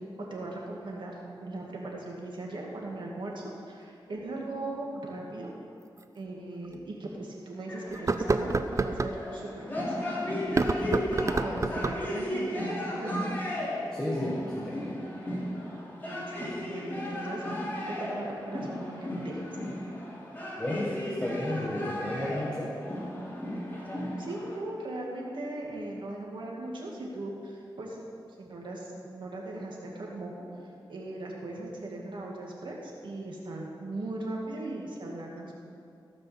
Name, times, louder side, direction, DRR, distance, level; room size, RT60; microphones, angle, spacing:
voice 1, 0.3-1.1 1.4-5.5 6.1-10.0 10.5-10.6 11.0-13.2 16.0-19.6 24.2-28.0 28.4-30.3 30.9-35.5, right 2 dB, 75° right, -2 dB, 2.4 m, -38 dB
sound 1, 4.7-4.8 6.0-6.1 6.7-6.8 7.9-9.2 10.4-12.1, right 3 dB, 40° right, 0.5 m, -28 dB
sound 2, 7.7-24.6, left 1 dB, 25° left, 2.8 m, -35 dB
voice 2, 11.3-11.9 13.9-14.8 20.6-22.7, left 1 dB, 10° left, -5 dB, 1.7 m, -33 dB
16.5 x 5.5 x 7.5 m, 2.5 s
wide cardioid pair, 85°, 8 cm